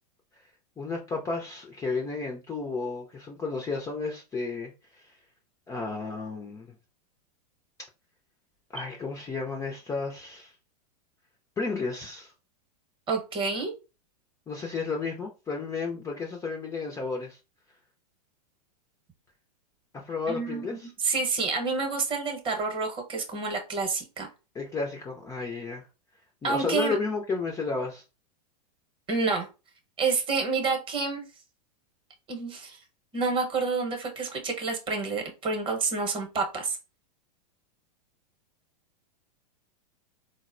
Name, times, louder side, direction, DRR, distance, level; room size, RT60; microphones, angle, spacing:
voice 1, 0.8-5.1 5.7-6.7 8.7-10.5 11.6-12.3 14.5-17.4 19.9-20.9 24.5-25.8 26.4-28.0, left 4 dB, 15° left, 0.4 m, -32 dB
voice 2, 13.1-13.7 20.3-24.3 26.4-27.0 29.1-29.5 30.0-31.2 32.3-32.8 33.1-36.8, right 4 dB, 25° right, 0.8 m, -28 dB
3.9 x 2.1 x 2.5 m
hypercardioid pair, 110°, 21 cm